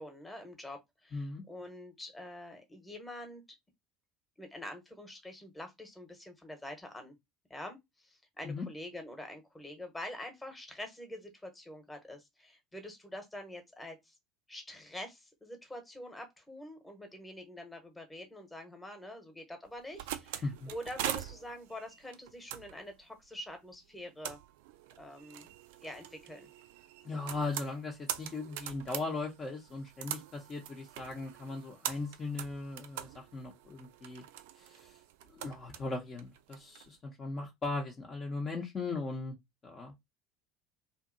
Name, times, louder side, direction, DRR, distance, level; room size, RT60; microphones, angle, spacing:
voice 1, 0.0-3.4 4.4-7.2 7.5-7.8 8.0-14.1 14.5-24.4 25.0-25.5 25.8-26.5, left 1 dB, 10° left, 1.1 m, -46 dB
voice 2, 1.1-1.4 8.4-8.6 20.4-20.7 27.0-34.2 34.6-34.9 35.3-39.4 39.6-40.0, left 3 dB, 30° left, 0.8 m, -38 dB
sound 1, 19.7-36.9, right 11 dB, 65° right, 0.3 m, -43 dB
2.7 x 2.6 x 2.6 m
figure-of-eight pair, 65°, 0 cm